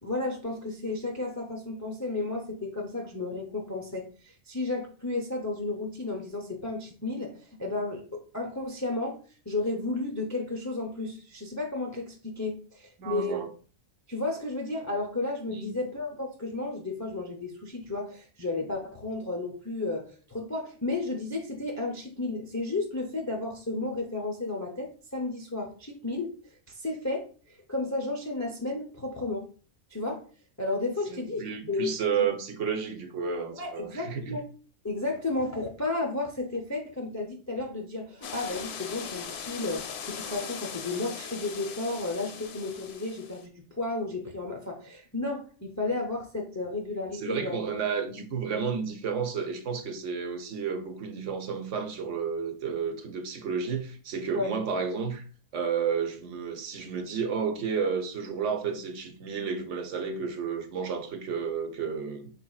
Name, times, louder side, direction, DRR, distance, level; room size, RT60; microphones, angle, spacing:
voice 1, 0.0-9.2 9.5-13.4 14.1-29.5 29.9-30.2 30.6-31.9 33.6-34.4 34.8-47.7 54.3-54.5, left 2 dB, 25° left, 0.3 m, -33 dB
voice 2, 13.0-13.5 15.5-15.7 31.1-34.4 47.1-55.3 55.5-62.3, right 6 dB, 70° right, 1.0 m, -31 dB
sound 1, 38.2-43.5, left 7 dB, 65° left, 0.8 m, -40 dB
4.7 x 4.1 x 2.3 m
omnidirectional pair, 1.3 m